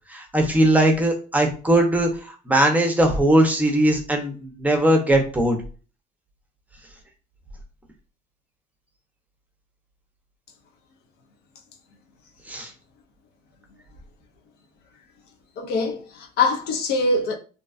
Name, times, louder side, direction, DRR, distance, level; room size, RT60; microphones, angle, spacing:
voice 1, 0.1-2.1 2.5-5.6 12.5-12.7, right 1 dB, 10° right, 0.6 m, -19 dB
voice 2, 15.6-17.4, left 3 dB, 75° left, 0.5 m, -23 dB
2.6 x 2.2 x 2.4 m
cardioid pair, 110°, 17 cm